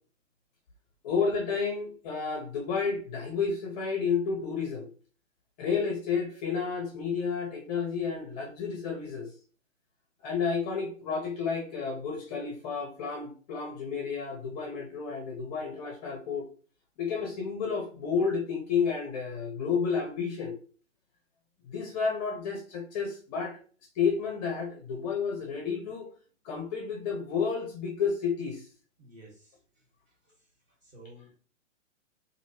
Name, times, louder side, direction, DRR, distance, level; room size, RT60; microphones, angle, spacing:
voice 1, 1.0-4.9 5.6-9.3 10.2-16.5 17.0-20.5 21.7-23.6 24.0-26.1 26.4-28.7, left 5 dB, 35° left, 1 dB, 0.7 m, -31 dB
voice 2, 29.0-29.5 30.8-31.4, right 1 dB, 20° right, -3 dB, 1.4 m, -51 dB
2.9 x 2.6 x 2.7 m, 0.41 s
hypercardioid pair, 130°, 38 cm